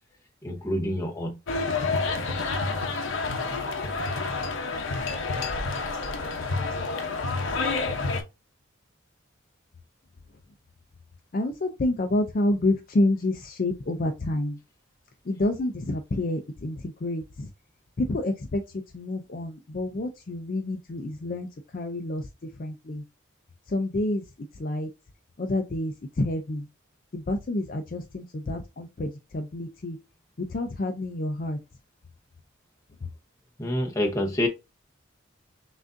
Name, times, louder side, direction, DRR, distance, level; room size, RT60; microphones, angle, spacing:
voice 1, 0.4-1.4 33.6-34.5, left 1 dB, 15° left, 0.9 m, -27 dB
sound 1, 1.5-8.2, left 3 dB, 75° left, 0.7 m, -29 dB
voice 2, 11.3-14.6 15.3-17.5 18.0-18.6 18.9-21.5 21.7-22.3 22.6-23.0 23.7-24.2 24.6-24.9 25.4-26.7 27.1-30.0 30.4-31.6, left 2 dB, 45° left, 0.4 m, -28 dB
6.0 x 2.5 x 2.5 m
head